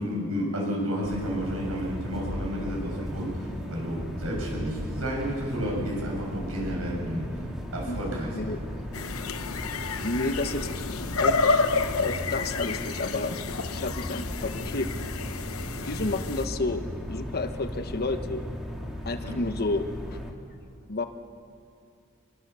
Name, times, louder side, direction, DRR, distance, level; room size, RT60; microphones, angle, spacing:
voice 1, 0.0-7.4 7.7-8.6 19.2-19.4, equal, 75° right, -2 dB, 7.2 m, -31 dB
sound 1, 1.0-20.3, equal, ahead, 2.4 m, -36 dB
sound 2, 8.9-16.5, left 4 dB, 70° left, 1.0 m, -30 dB
voice 2, 10.0-13.4 13.7-14.9 15.9-16.8 17.1-18.4 19.0-20.2 20.9-21.0, left 2 dB, 45° left, 8 dB, 1.1 m, -31 dB
24.5 x 21.5 x 7.0 m, 2.6 s
head